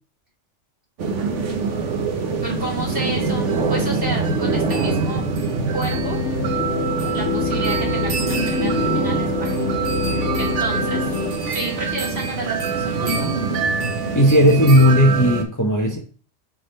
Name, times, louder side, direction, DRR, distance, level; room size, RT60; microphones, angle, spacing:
sound 1, 1.0-15.4, right 4 dB, 80° right, 1.3 m, -24 dB
voice 1, 2.4-5.3 5.7-6.2 7.1-9.6 10.1-11.1 11.5-13.3, right 2 dB, 60° right, 2.9 m, -31 dB
sound 2, 5.9-11.3, left 7 dB, 75° left, 1.0 m, -26 dB
voice 2, 14.1-16.0, equal, 20° left, 0.7 m, -15 dB
7.3 x 3.7 x 4.2 m
omnidirectional pair, 1.2 m